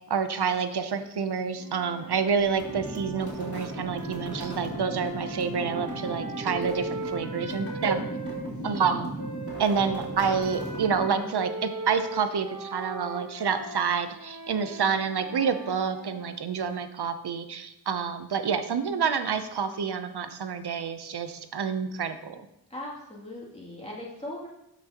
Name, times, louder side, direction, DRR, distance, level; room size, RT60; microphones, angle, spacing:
voice 1, 0.1-8.0 8.6-9.1 9.6-22.5, right 6 dB, 80° right, 10 dB, 0.7 m, -28 dB
sound 1, 1.5-8.4 9.2-16.3, right 2 dB, 50° right, 1.7 m, -39 dB
sound 2, 2.4-11.4, equal, 35° left, 3.5 m, -37 dB
voice 2, 22.7-24.5, left 1 dB, 15° left, -5 dB, 2.6 m, -39 dB
12.5 x 6.1 x 2.9 m, 0.86 s
wide cardioid pair, 90°, 39 cm